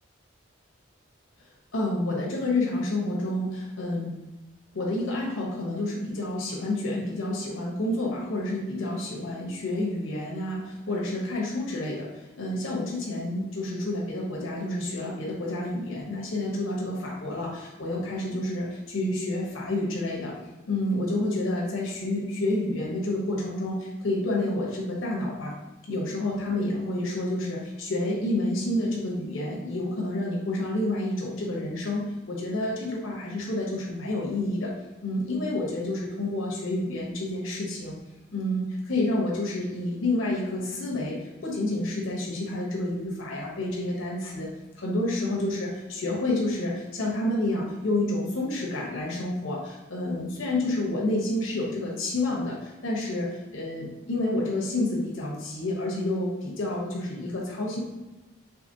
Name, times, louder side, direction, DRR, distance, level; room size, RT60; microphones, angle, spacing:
voice 1, 1.7-4.1 4.7-12.1 12.4-20.3 20.7-25.5 25.9-34.7 35.0-38.0 38.3-44.5 44.8-53.3 53.5-57.8, left 1 dB, 90° left, -3 dB, 1.0 m, -29 dB
4.8 x 3.4 x 2.7 m, 1.1 s
head